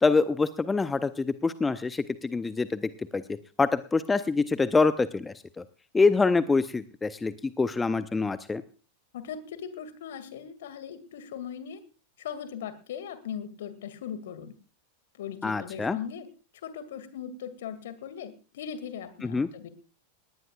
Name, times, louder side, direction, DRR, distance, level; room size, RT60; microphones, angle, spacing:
voice 1, 0.0-3.2 3.6-5.6 5.9-8.6 15.4-16.0 19.2-19.5, left 4 dB, 10° left, 14 dB, 0.7 m, -25 dB
voice 2, 9.1-11.8 12.2-14.5 15.1-16.3 16.6-19.7, left 8 dB, 60° left, 12 dB, 2.2 m, -39 dB
19.0 x 18.5 x 2.4 m, 0.35 s
figure-of-eight pair, 90°, 0 cm